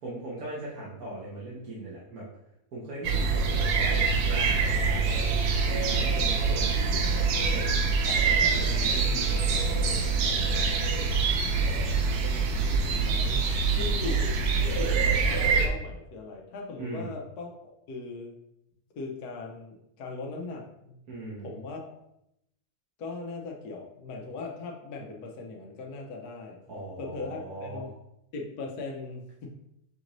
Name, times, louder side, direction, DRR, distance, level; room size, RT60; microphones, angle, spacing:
voice 1, 0.0-2.3 2.7-5.3 5.7-7.0 7.4-10.7 16.8-17.2 21.1-21.6 26.7-27.9, right 1 dB, 70° right, -6 dB, 1.5 m, -39 dB
sound 1, 3.0-15.7, right 4 dB, 90° right, 1.2 m, -25 dB
voice 2, 12.0-13.4 13.7-18.3 19.0-21.0 21.4-22.0 23.0-26.6 27.0-27.9 28.3-29.6, left 3 dB, 85° left, 0 dB, 1.2 m, -39 dB
6.1 x 2.5 x 3.0 m, 0.80 s
omnidirectional pair, 1.6 m